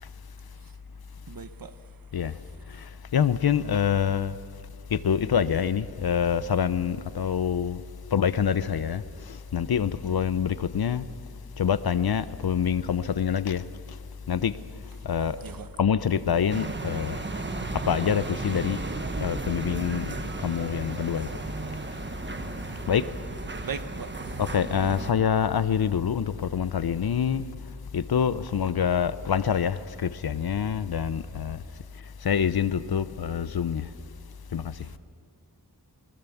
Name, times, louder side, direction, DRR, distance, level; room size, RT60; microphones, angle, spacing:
voice 1, 1.3-2.9 15.2-15.8 22.7-23.1 23.5-24.5 34.8-35.0, right 6 dB, 55° right, 1.1 m, -42 dB
voice 2, 3.1-4.4 4.9-7.8 8.1-11.1 11.6-13.6 14.3-14.5 15.0-15.4 15.8-17.2 17.9-18.8 19.2-20.1 20.4-21.3 22.9-23.0 24.4-27.4 27.9-31.6 32.2-33.9 34.5-34.7, left 8 dB, 65° left, 0.8 m, -26 dB
sound 1, 16.5-25.1, right 3 dB, 30° right, 1.2 m, -34 dB
23.5 x 20.5 x 7.2 m
wide cardioid pair, 125°, 40 cm